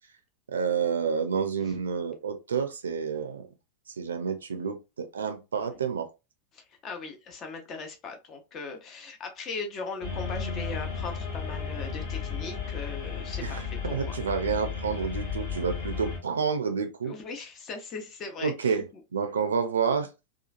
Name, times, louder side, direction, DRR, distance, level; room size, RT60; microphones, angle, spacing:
voice 1, 0.5-3.4 4.0-6.1 13.4-17.1 18.4-18.8 19.1-20.1, right 6 dB, 70° right, 0.5 m, -29 dB
voice 2, 6.5-14.1 17.0-18.9, left 4 dB, 30° left, 0.8 m, -39 dB
sound 1, 10.0-16.2, left 6 dB, 55° left, 1.3 m, -34 dB
2.9 x 2.4 x 2.4 m
figure-of-eight pair, 90°, 0 cm